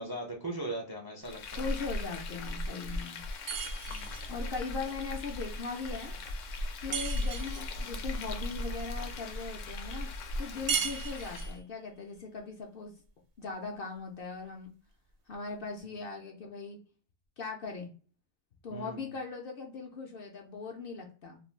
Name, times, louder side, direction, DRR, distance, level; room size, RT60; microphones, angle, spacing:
voice 1, 0.0-1.7 3.9-4.2 10.6-10.9 15.8-16.0 18.7-19.1, right 1 dB, 35° right, -1 dB, 0.4 m, -40 dB
Frying (food), 1.2-11.6, left 1 dB, 85° left, 0.9 m, -38 dB
voice 2, 1.6-3.2 4.3-6.1 6.8-10.1 10.4-12.9 13.4-14.7 15.3-16.8 17.4-17.9 18.6-21.4, left 4 dB, 60° left, 2 dB, 0.6 m, -39 dB
sound 1, 3.5-4.3 6.9-7.7 10.7-11.6, right 7 dB, 60° right, 0.8 m, -35 dB
2.5 x 2.2 x 3.1 m, 0.41 s
omnidirectional pair, 1.3 m